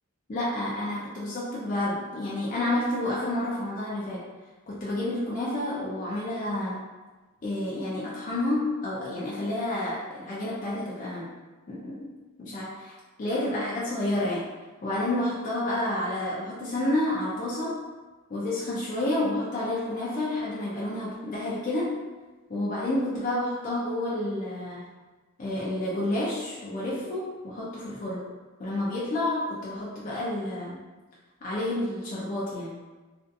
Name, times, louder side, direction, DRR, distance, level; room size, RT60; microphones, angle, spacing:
voice 1, 0.3-4.2 4.7-6.8 7.4-11.3 11.7-12.1 12.4-12.9 13.2-14.5 14.8-17.8 18.3-22.0 22.5-24.9 25.4-28.3 28.6-30.8 31.4-32.8, left 1 dB, 40° left, -7 dB, 0.4 m, -30 dB
2.5 x 2.3 x 2.5 m, 1.2 s
head